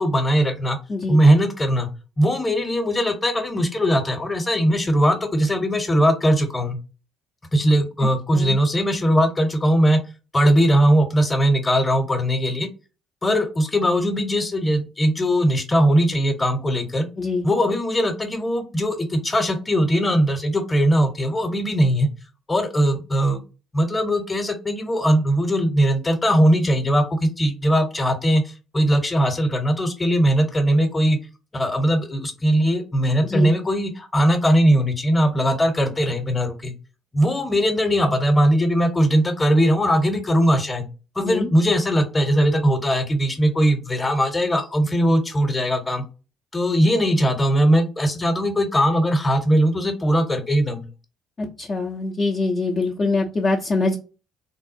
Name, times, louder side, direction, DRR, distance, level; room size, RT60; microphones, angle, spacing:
voice 1, 0.0-0.8 1.1-1.9 2.2-6.8 7.5-10.0 10.3-12.7 13.2-17.1 17.4-22.1 22.5-23.4 23.7-31.2 31.5-36.7 37.1-40.9 41.1-46.0 46.5-50.9, equal, 25° left, 7 dB, 0.9 m, -20 dB
voice 2, 0.9-1.2 8.3-8.6 17.2-17.5 33.2-33.5 41.2-41.5 51.4-54.0, left 3 dB, 40° left, -2 dB, 0.6 m, -24 dB
3.5 x 2.3 x 2.6 m, 0.32 s
hypercardioid pair, 45°, 0 cm